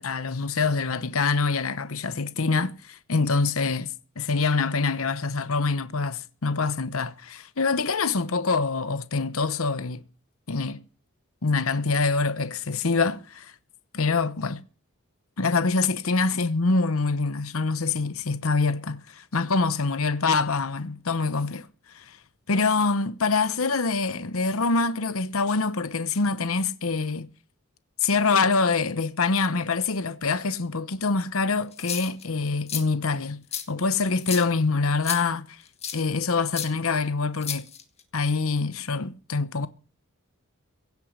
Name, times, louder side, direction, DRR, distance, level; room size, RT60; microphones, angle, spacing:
voice 1, 0.0-10.0 10.5-10.8 11.4-13.5 13.9-14.6 15.4-21.7 21.9-22.2 22.5-27.3 28.0-35.6 35.9-37.7 38.1-39.7, left 4 dB, 75° left, 0.9 m, -25 dB
sound 1, 31.7-32.2 32.7-32.8 33.5-33.6 34.2-34.5 35.0-35.2 35.8-36.0 36.5-36.7 37.4-38.0, left 9 dB, 30° left, 1.9 m, -31 dB
16.5 x 8.3 x 7.4 m
head